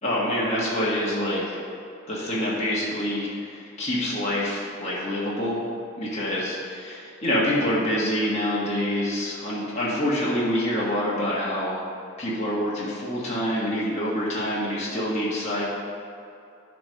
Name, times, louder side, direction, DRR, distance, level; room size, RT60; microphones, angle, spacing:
voice 1, 0.0-1.6 2.1-5.6 6.0-11.8 12.2-15.6, equal, 30° left, -8 dB, 1.5 m, -26 dB
9.9 x 3.4 x 5.6 m, 2.6 s
head